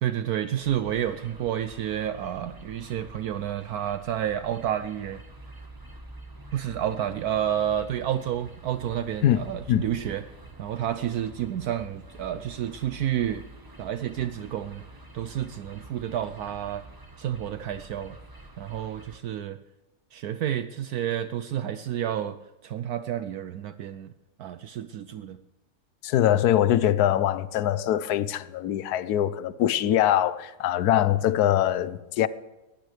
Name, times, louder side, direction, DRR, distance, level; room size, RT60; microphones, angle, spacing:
voice 1, 0.0-5.2 6.5-10.2 10.6-13.4 13.8-14.8 15.1-16.8 17.2-18.1 18.6-19.6 20.1-22.4 22.6-24.1 24.4-25.4, right 10 dB, 70° right, 1.1 m, -30 dB
sound 1, 0.6-19.2, right 1 dB, 15° right, 1.2 m, -47 dB
voice 2, 26.0-32.3, left 12 dB, 75° left, 1.2 m, -23 dB
20.5 x 15.5 x 3.3 m
omnidirectional pair, 1.7 m